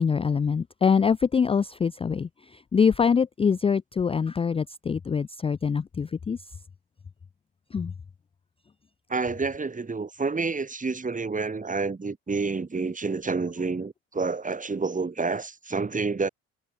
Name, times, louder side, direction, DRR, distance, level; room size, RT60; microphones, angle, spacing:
voice 1, 0.0-6.4 7.7-7.9, left 6 dB, 20° left, 0.4 m, -24 dB
voice 2, 9.1-16.3, right 4 dB, 25° right, 2.4 m, -29 dB
hypercardioid pair, 55°, 31 cm